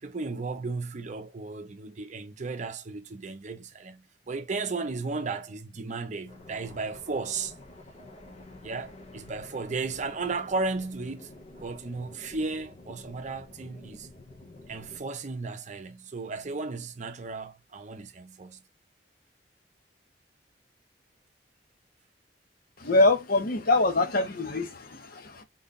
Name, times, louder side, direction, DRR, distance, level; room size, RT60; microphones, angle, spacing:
voice 1, 0.0-7.5 8.6-11.3 11.6-14.1 14.7-18.6, right 3 dB, 45° right, 0.6 m, -35 dB
sound 1, 6.3-15.0, left 1 dB, 35° left, 1.1 m, -49 dB
voice 2, 22.8-25.4, left 2 dB, 55° left, 0.9 m, -24 dB
3.9 x 2.2 x 4.0 m
head